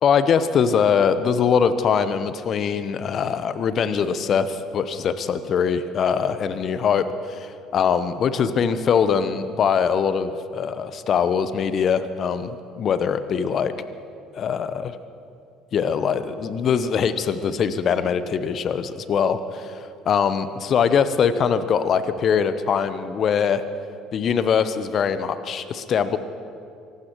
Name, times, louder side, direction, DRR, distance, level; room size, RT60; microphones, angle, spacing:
voice 1, 0.0-13.7 14.3-14.9 15.7-23.6 24.1-26.2, left 7 dB, 45° left, 13 dB, 0.9 m, -22 dB
25.5 x 18.0 x 3.1 m, 2.5 s
figure-of-eight pair, 55°, 0 cm